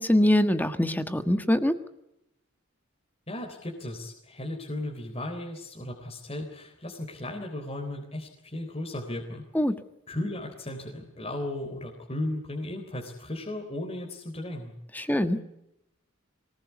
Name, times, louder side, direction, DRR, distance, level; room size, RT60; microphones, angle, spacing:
voice 1, 0.0-1.7 9.5-9.7 14.9-15.4, left 1 dB, 10° left, 9 dB, 1.5 m, -23 dB
voice 2, 3.3-9.4 10.1-14.7 15.0-15.4, left 1 dB, 30° left, 1 dB, 3.7 m, -36 dB
24.5 x 19.5 x 8.3 m, 0.83 s
head